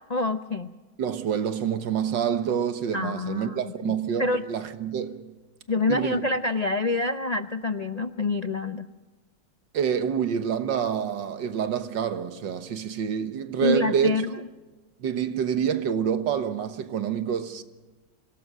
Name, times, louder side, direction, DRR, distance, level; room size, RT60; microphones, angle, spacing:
voice 1, 0.1-0.7 2.9-4.4 5.7-8.9 13.6-14.3, left 3 dB, 80° left, 0.3 m, -27 dB
voice 2, 1.0-5.3 5.9-6.3 9.7-14.3 15.0-17.6, right 8 dB, 85° right, 1.9 m, -27 dB
25.5 x 18.5 x 6.2 m
omnidirectional pair, 1.9 m